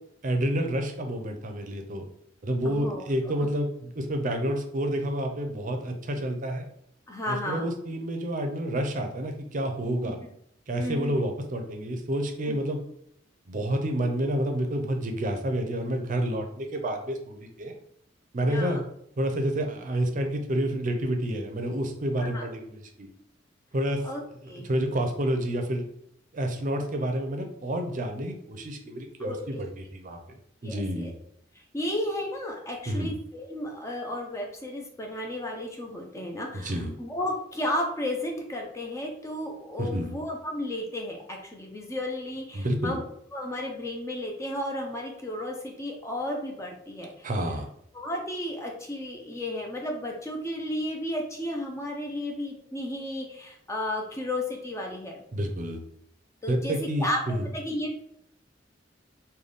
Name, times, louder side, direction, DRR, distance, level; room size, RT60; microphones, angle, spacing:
voice 1, 0.2-2.0 2.4-6.7 7.3-10.2 10.7-12.8 13.5-17.7 18.3-18.8 19.2-23.1 23.7-24.1 24.4-25.9 26.3-31.1 32.9-33.1 36.5-36.9 39.8-40.1 42.5-43.0 47.2-47.7 55.3-55.8 56.5-57.5, right 1 dB, 45° right, 5 dB, 0.6 m, -29 dB
voice 2, 2.6-3.0 3.4-3.5 7.1-7.7 10.0-10.1 10.8-11.2 12.5-12.6 18.5-18.8 22.2-22.5 24.0-24.7 29.2-29.6 30.6-31.1 31.7-43.0 43.3-47.3 47.9-55.2 56.4-57.2 57.5-58.0, left 1 dB, 15° left, 1 dB, 0.5 m, -33 dB
3.3 x 2.2 x 3.9 m, 0.71 s
head